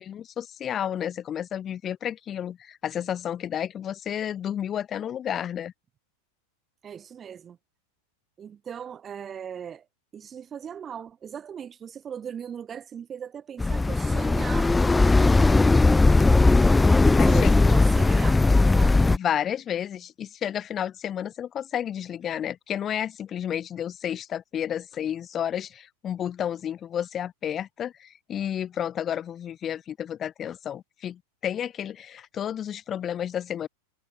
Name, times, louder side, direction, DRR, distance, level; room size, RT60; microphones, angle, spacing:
voice 1, 0.0-5.7 17.2-17.5 19.1-33.7, left 9 dB, 25° left, 2.6 m, -31 dB
voice 2, 6.8-7.6 8.4-9.8 10.1-15.7 17.1-19.1, right 8 dB, 25° right, 1.2 m, -39 dB
sound 1, 13.6-19.2, left 3 dB, 10° left, 0.3 m, -18 dB
figure-of-eight pair, 90°, 0 cm